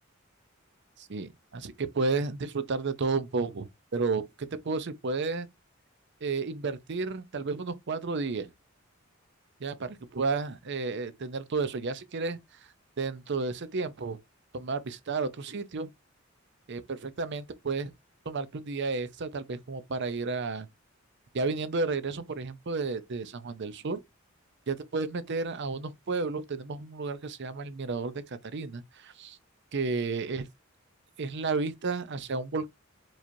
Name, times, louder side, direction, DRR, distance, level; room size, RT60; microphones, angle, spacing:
voice 1, 1.0-5.5 6.2-8.5 9.6-12.4 13.0-14.2 14.5-15.9 16.7-17.9 18.3-20.7 21.3-24.0 24.7-29.4 29.7-30.4 31.2-32.7, right 4 dB, 55° right, 0.6 m, -32 dB
4.7 x 2.9 x 2.7 m
head